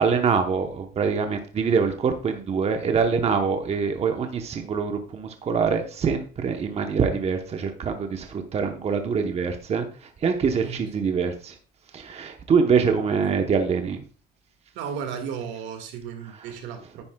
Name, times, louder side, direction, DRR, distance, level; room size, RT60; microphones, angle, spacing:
voice 1, 0.0-9.9 10.2-11.5 11.9-14.0, right 5 dB, 35° right, 5 dB, 0.9 m, -24 dB
voice 2, 14.8-17.0, right 7 dB, 80° right, 6 dB, 1.8 m, -34 dB
9.9 x 9.2 x 2.3 m, 0.39 s
cardioid pair, 135°, 19 cm